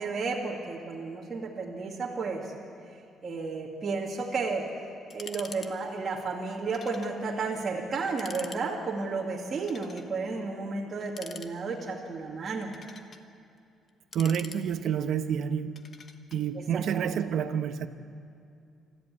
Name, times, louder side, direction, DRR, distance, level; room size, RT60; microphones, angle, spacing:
voice 1, 0.0-2.5 3.2-4.7 5.1-12.7 16.5-17.3, right 4 dB, 30° right, -3 dB, 2.4 m, -33 dB
sound 1, 5.1-5.7 6.0-6.1 6.7-7.2 7.5-7.6 8.0-8.6 9.6-10.1 11.0-11.9 12.5-13.2 13.9-15.0 15.8-16.4, left 5 dB, 35° left, 1.1 m, -45 dB
voice 2, 14.1-15.8 16.3-17.9, right 8 dB, 60° right, 10 dB, 1.0 m, -28 dB
25.0 x 14.5 x 9.7 m, 2.5 s
cardioid pair, 150°, 0 cm